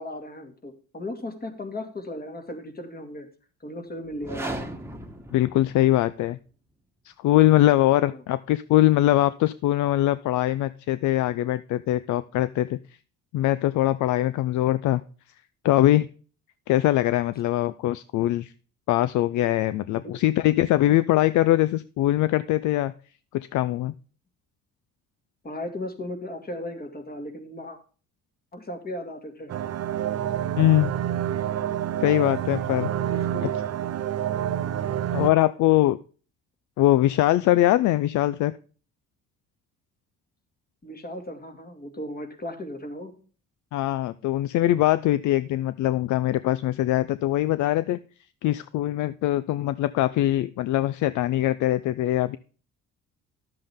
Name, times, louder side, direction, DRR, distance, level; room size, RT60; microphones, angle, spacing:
voice 1, 0.0-3.3 3.6-4.7 7.9-8.2 20.0-20.2 25.4-27.8 28.5-29.6 33.1-33.5 40.8-43.1, left 1 dB, 30° left, 5 dB, 2.3 m, -36 dB
sound 1, 4.1-6.2, right 1 dB, 10° right, 1.4 m, -37 dB
voice 2, 5.3-6.4 7.2-12.8 13.3-15.0 15.6-16.1 16.7-18.5 18.9-22.9 23.3-23.9 30.6-30.9 32.0-32.9 35.1-36.0 36.8-38.5 43.7-48.0 48.4-52.4, left 14 dB, 75° left, 16 dB, 0.5 m, -22 dB
sound 2, 29.5-35.3, right 10 dB, 55° right, 0.8 m, -28 dB
11.5 x 7.7 x 3.6 m, 0.38 s
cardioid pair, 105°, 30 cm